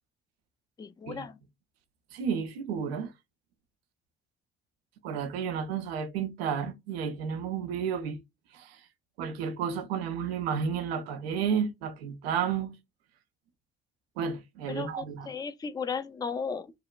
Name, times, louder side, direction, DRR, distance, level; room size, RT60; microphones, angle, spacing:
voice 1, 0.8-1.4 14.7-16.7, left 5 dB, 15° left, 0.3 m, -35 dB
voice 2, 2.1-3.1 5.0-8.2 8.5-8.8 9.2-12.8 14.2-15.3, right 7 dB, 90° right, 0.5 m, -32 dB
3.1 x 2.1 x 2.2 m
hypercardioid pair, 50°, 30 cm